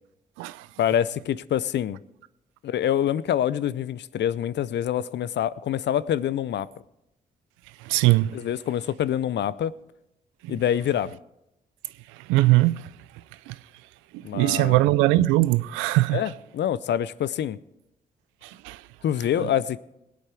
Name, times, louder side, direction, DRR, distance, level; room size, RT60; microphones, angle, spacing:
voice 1, 0.8-2.0 2.6-6.7 8.3-9.7 10.5-11.2 14.2-14.8 16.1-17.6 19.0-19.8, left 10 dB, 65° left, 0.5 m, -26 dB
voice 2, 7.8-8.4 10.4-10.6 12.1-12.9 13.5-13.6 14.1-16.2 18.4-18.9 19.4-19.5, right 18 dB, 90° right, 0.4 m, -22 dB
19.0 x 8.4 x 4.6 m
hypercardioid pair, 40°, 20 cm